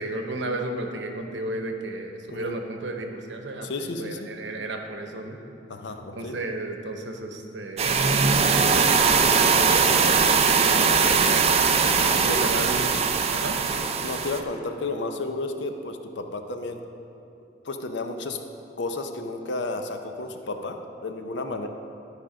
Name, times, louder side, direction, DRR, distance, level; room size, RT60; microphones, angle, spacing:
voice 1, 0.0-3.7 4.0-5.4 6.1-8.8 9.4-11.4 12.1-12.9 13.3-13.6, right 2 dB, 75° right, 4 dB, 0.9 m, -33 dB
voice 2, 3.6-4.3 5.7-6.4 12.2-12.5 14.0-16.8 17.6-18.4 18.8-21.7, left 2 dB, 70° left, 6 dB, 0.6 m, -32 dB
sound 1, 7.8-14.4, right 5 dB, 35° right, 0.5 m, -20 dB
12.5 x 5.0 x 5.1 m, 2.8 s
head